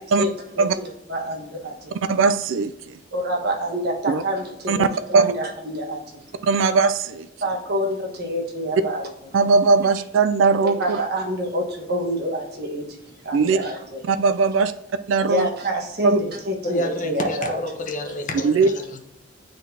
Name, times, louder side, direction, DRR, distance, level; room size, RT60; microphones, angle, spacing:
voice 1, 0.5-2.0 3.1-6.3 7.4-9.1 10.8-14.0 15.3-17.6, right 1 dB, 55° right, 0 dB, 1.4 m, -27 dB
voice 2, 2.1-2.9 4.1-4.2 4.7-4.9 5.1-5.3 6.4-7.3 9.3-11.0 13.3-13.6 14.1-14.7 15.1-15.5 16.0-16.2 18.4-18.7, right 4 dB, 80° right, 11 dB, 0.4 m, -19 dB
voice 3, 16.6-19.0, left 1 dB, 40° left, 3 dB, 0.9 m, -29 dB
9.3 x 3.9 x 2.8 m, 0.84 s
head